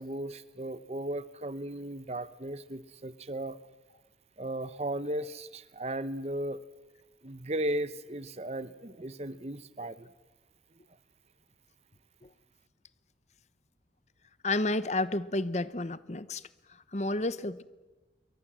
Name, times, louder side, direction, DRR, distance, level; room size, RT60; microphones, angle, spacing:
voice 1, 0.0-3.6 4.4-6.6 7.2-10.1, right 1 dB, 35° right, 0.9 m, -36 dB
voice 2, 14.4-16.4 16.9-17.6, left 2 dB, 40° left, 0.9 m, -30 dB
27.5 x 23.5 x 7.5 m
head